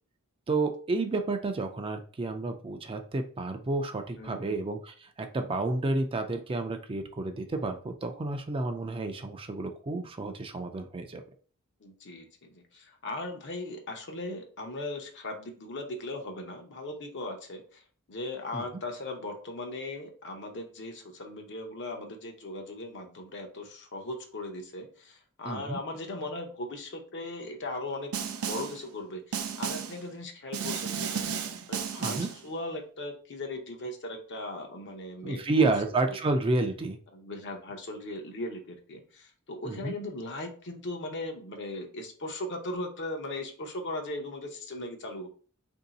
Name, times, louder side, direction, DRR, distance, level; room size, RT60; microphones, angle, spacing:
voice 1, 0.5-11.2 18.5-18.6 25.5-25.8 32.0-32.3 35.2-37.0 39.7-39.9, right 3 dB, 25° right, 5 dB, 0.4 m, -30 dB
voice 2, 4.1-4.6 11.8-35.7 36.1-36.2 37.1-45.3, left 2 dB, 55° left, 4 dB, 0.7 m, -38 dB
Snare drum, 28.1-28.8 29.3-30.0 30.5-32.4, right 7 dB, 80° right, 0.5 m, -33 dB
3.0 x 2.7 x 3.9 m, 0.42 s
head